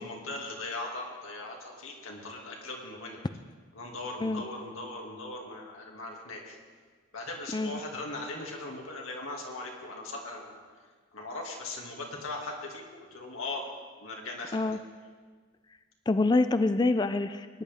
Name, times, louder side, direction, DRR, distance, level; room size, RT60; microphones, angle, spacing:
voice 1, 0.0-3.2 3.7-6.6 7.1-10.6 11.1-13.7 14.0-14.8, left 2 dB, 90° left, 0 dB, 2.3 m, -39 dB
voice 2, 16.1-17.6, left 2 dB, 20° left, 11 dB, 0.3 m, -26 dB
19.0 x 10.5 x 3.5 m, 1.5 s
head